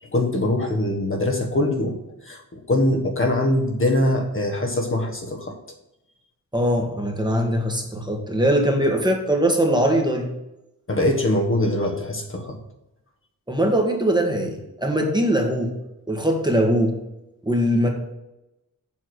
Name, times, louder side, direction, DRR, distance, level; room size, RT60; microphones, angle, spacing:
voice 1, 0.0-2.0 2.2-5.5 10.9-12.6, left 1 dB, 40° left, 2 dB, 1.3 m, -22 dB
voice 2, 6.5-10.3 13.5-15.7 16.1-17.0 17.4-17.9, equal, 15° right, 1 dB, 1.5 m, -21 dB
7.4 x 5.9 x 6.2 m, 0.90 s
wide cardioid pair, 150°, 34 cm